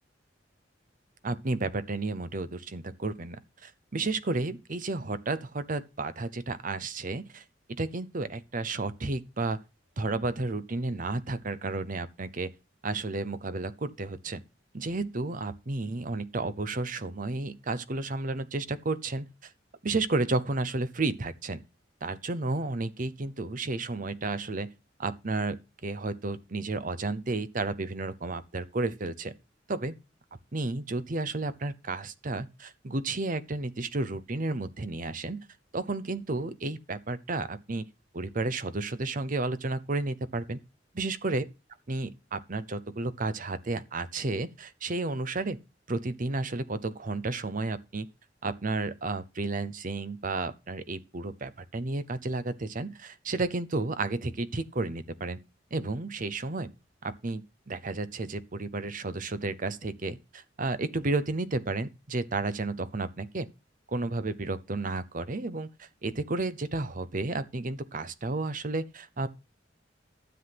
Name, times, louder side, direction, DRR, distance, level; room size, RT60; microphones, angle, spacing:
voice 1, 1.2-9.6 10.0-12.5 12.8-14.4 14.7-19.5 19.8-21.6 22.0-24.7 25.0-29.3 29.7-30.0 30.5-35.5 35.7-37.9 38.1-40.6 40.9-41.4 41.9-45.6 45.9-48.1 48.4-55.4 55.7-56.7 57.0-63.5 63.9-69.3, right 3 dB, 45° right, 0.8 m, -32 dB
12.5 x 7.9 x 5.8 m
head